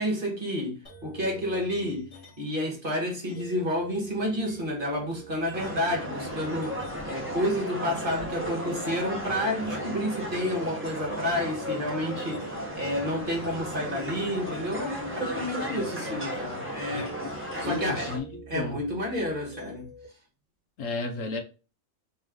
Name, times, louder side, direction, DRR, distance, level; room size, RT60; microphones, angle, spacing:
voice 1, 0.0-2.1 2.4-6.8 7.0-17.2 17.6-18.1 18.5-19.9, left 1 dB, 40° right, 1.5 m, -30 dB
sound 1, 0.8-2.6 3.2-8.3 8.6-20.1, right 2 dB, 50° left, 2.1 m, -47 dB
sound 2, 5.5-18.2, equal, 10° right, 0.9 m, -35 dB
voice 2, 17.6-18.3 18.5-18.8 20.8-21.4, left 3 dB, 70° left, 1.2 m, -32 dB
4.0 x 3.2 x 3.7 m
omnidirectional pair, 1.4 m